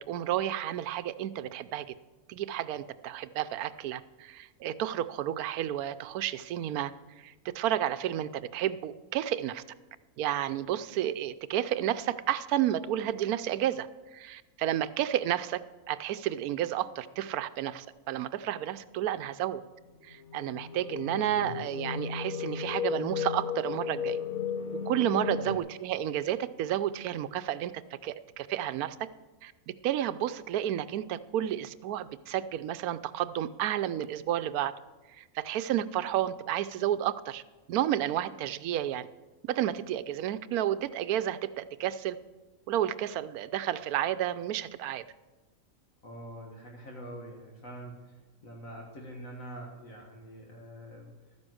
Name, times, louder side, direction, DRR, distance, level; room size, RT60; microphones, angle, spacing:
voice 1, 0.1-1.9 2.3-6.9 7.2-9.6 10.2-15.6 15.9-19.6 20.0-24.2 24.9-27.7 28.0-29.1 29.4-29.5 29.8-34.7 35.1-37.4 37.7-39.1 39.4-42.2 42.7-45.0, right 11 dB, 90° right, 14 dB, 1.1 m, -31 dB
sound 1, 20.1-25.6, left 7 dB, 85° left, 1.3 m, -35 dB
voice 2, 21.3-21.6 25.3-25.6 46.0-51.1, right 1 dB, 65° left, -1 dB, 2.1 m, -45 dB
12.5 x 9.8 x 6.3 m, 1.2 s
omnidirectional pair, 1.5 m